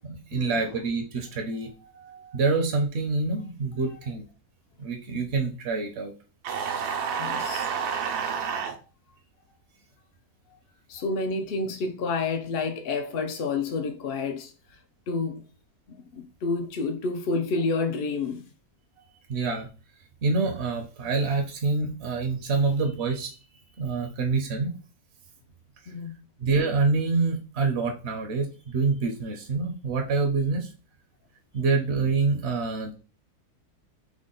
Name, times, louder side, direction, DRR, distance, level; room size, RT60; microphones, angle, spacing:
voice 1, 0.1-4.3 4.8-6.1 19.3-19.7 20.2-23.4 23.8-24.7 25.8-25.9 26.4-30.7 31.5-32.9, right 4 dB, 55° right, 0.8 m, -26 dB
sound 1, 6.4-8.8, right 6 dB, 85° right, 1.2 m, -29 dB
voice 2, 7.2-7.7 10.9-14.5 15.1-15.4 16.1-18.4 25.9-26.2, left 4 dB, 70° left, 0.5 m, -29 dB
3.6 x 2.2 x 3.7 m
omnidirectional pair, 1.6 m